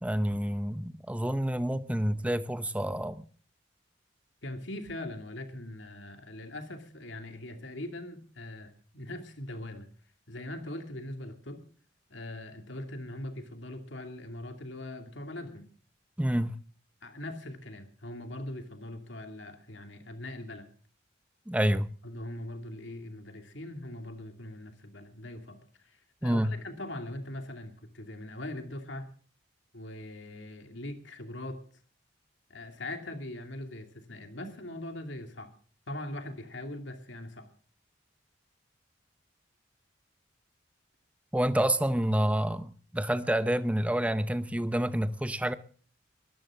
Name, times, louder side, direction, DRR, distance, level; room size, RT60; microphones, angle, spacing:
voice 1, 0.0-3.3 16.2-16.6 21.5-21.9 26.2-26.5 41.3-45.5, right 1 dB, 5° right, 0.7 m, -28 dB
voice 2, 4.4-9.9 10.3-11.6 12.1-15.7 17.0-20.7 22.0-29.1 29.7-31.6 32.5-35.5 35.9-37.5, left 1 dB, 75° left, 2.5 m, -41 dB
21.5 x 14.0 x 3.7 m
head